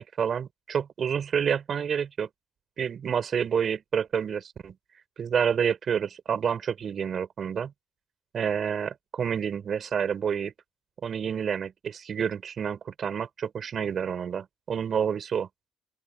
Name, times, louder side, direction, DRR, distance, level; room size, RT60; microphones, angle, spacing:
voice 1, 0.0-2.3 2.8-4.7 5.2-7.7 8.3-10.5 11.0-15.5, right 7 dB, 50° right, 5.3 m, -28 dB
open air
cardioid pair, 85°, 0 cm